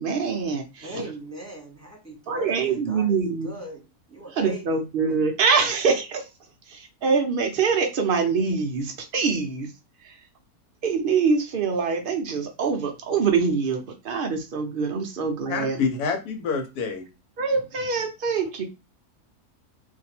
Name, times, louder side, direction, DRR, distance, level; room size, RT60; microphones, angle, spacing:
voice 1, 0.0-0.9 2.3-3.5 4.4-6.2 6.7-9.7 10.0-10.1 10.8-15.8 17.4-18.6, right 5 dB, 75° right, 4 dB, 0.5 m, -24 dB
voice 2, 0.8-3.8 4.1-4.8 5.1-5.2, right 1 dB, 10° right, -2 dB, 1.1 m, -40 dB
voice 3, 15.5-17.1, left 5 dB, 80° left, 5 dB, 1.3 m, -27 dB
2.6 x 2.5 x 4.2 m, 0.26 s
omnidirectional pair, 1.6 m